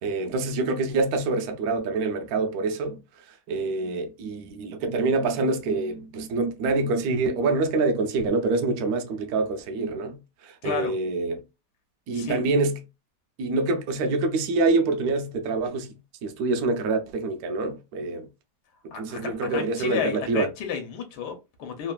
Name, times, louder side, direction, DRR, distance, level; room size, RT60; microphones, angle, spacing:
voice 1, 0.0-3.0 3.5-11.4 12.1-12.8 13.4-16.0 16.2-18.3 19.0-20.5, right 3 dB, 70° right, 1.0 m, -26 dB
voice 2, 10.6-10.9 12.1-12.4 18.9-21.9, left 7 dB, 80° left, 1.3 m, -32 dB
3.2 x 2.4 x 2.2 m
omnidirectional pair, 1.8 m